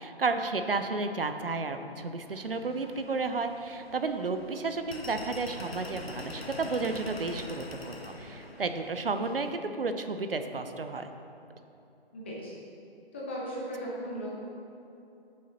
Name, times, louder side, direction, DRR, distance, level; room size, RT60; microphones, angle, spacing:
voice 1, 0.0-11.1, right 3 dB, 65° right, 8 dB, 0.6 m, -32 dB
sound 1, 2.3-9.6, left 2 dB, 75° left, 1.1 m, -44 dB
voice 2, 12.1-12.5 13.1-14.4, equal, 10° left, -6 dB, 0.6 m, -37 dB
12.0 x 6.4 x 2.9 m, 2.7 s
figure-of-eight pair, 145°, 31 cm